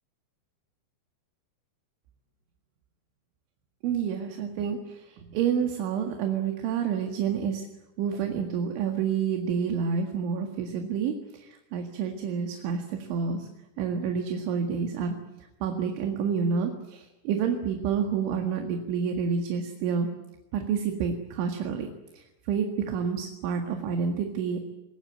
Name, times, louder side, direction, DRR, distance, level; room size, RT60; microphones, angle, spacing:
voice 1, 3.8-7.7 8.0-13.5 13.8-15.2 15.6-20.1 20.5-21.9 22.1-24.6, right 6 dB, 75° right, 4 dB, 4.2 m, -29 dB
25.5 x 21.5 x 8.8 m, 0.96 s
omnidirectional pair, 5.5 m